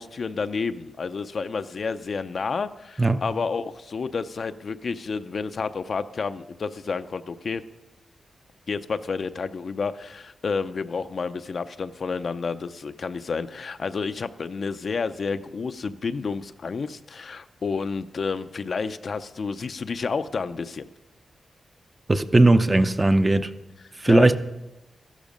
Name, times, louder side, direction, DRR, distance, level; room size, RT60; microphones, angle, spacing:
voice 1, 0.0-7.6 8.7-20.9 24.1-24.4, left 5 dB, 50° left, 0.5 m, -30 dB
voice 2, 22.1-23.5 24.0-24.4, right 2 dB, 20° right, 0.6 m, -18 dB
14.0 x 12.5 x 5.2 m
wide cardioid pair, 115°, 0 cm